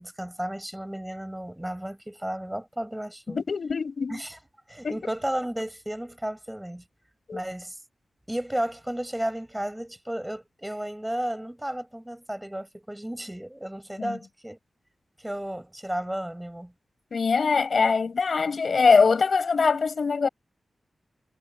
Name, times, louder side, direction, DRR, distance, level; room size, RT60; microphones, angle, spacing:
voice 1, 0.0-3.4 4.1-4.4 4.7-6.8 7.3-7.8 8.3-14.6 15.2-16.7, right 1 dB, 5° right, 6.7 m, -33 dB
voice 2, 3.3-4.2 4.8-5.0 7.3-7.4 14.0-14.2 17.1-20.3, left 5 dB, 60° left, 5.4 m, -23 dB
wide cardioid pair, 105°, 0 cm